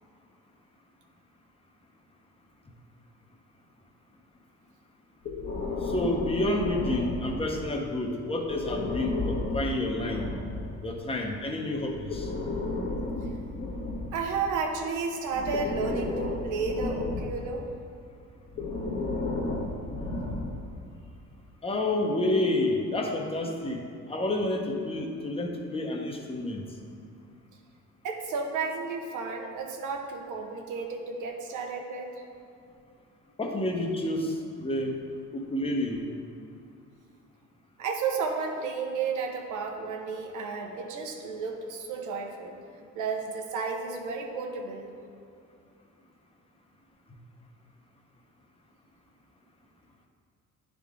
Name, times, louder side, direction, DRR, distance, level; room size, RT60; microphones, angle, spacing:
Breathing, 5.2-7.7 8.4-10.8 11.9-14.7 15.3-17.5 18.5-20.8, left 2 dB, 40° left, 1.2 m, -33 dB
voice 1, 5.8-10.3 10.8-12.3 21.6-23.8 24.1-26.6 33.4-35.0 35.3-36.0, left 1 dB, 20° left, 1 dB, 0.9 m, -29 dB
voice 2, 14.1-17.7 28.0-32.2 37.8-42.5 42.9-44.9, right 4 dB, 80° right, 2 dB, 1.0 m, -32 dB
10.0 x 3.7 x 3.7 m, 2.5 s
cardioid pair, 90°, 30 cm